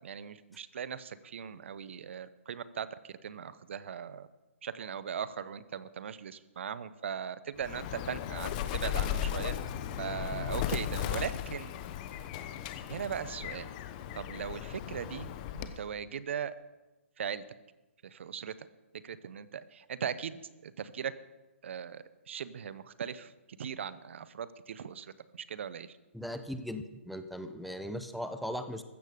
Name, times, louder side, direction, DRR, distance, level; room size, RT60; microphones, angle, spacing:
voice 1, 0.0-4.3 4.6-9.6 10.0-11.7 12.9-13.7 14.1-16.5 17.2-17.4 18.0-18.7 19.0-21.1 21.6-23.3 23.6-26.0, right 7 dB, 60° right, 16 dB, 0.8 m, -39 dB
Bird, 7.6-15.9, left 11 dB, 35° left, 1.0 m, -36 dB
voice 2, 26.1-28.8, equal, ahead, 9 dB, 0.7 m, -38 dB
15.0 x 13.0 x 5.1 m, 1.1 s
hypercardioid pair, 135°, 7 cm